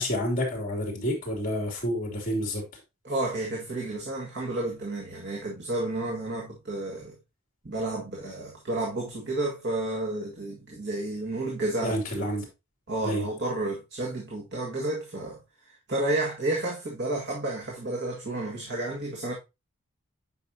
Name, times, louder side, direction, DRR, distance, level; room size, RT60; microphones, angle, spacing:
voice 1, 0.0-2.6 11.8-12.5 13.0-13.3, equal, 40° left, 2.9 m, -29 dB
voice 2, 3.0-7.2 7.6-12.3 12.9-15.4 15.9-19.3, right 2 dB, 55° right, 1.7 m, -31 dB
8.4 x 5.6 x 2.8 m
head